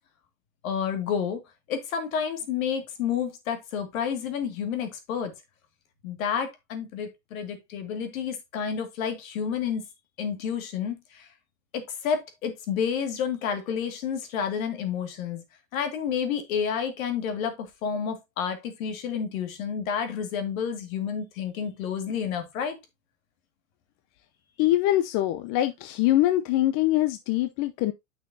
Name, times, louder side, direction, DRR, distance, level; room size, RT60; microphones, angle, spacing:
voice 1, 0.6-1.4 1.7-5.3 6.0-9.8 10.2-11.0 11.7-15.4 15.7-17.5 17.8-22.8, left 7 dB, 75° left, 2.2 m, -30 dB
voice 2, 24.6-27.9, left 14 dB, 50° left, 0.7 m, -23 dB
9.3 x 5.7 x 2.7 m
hypercardioid pair, 110°, 41 cm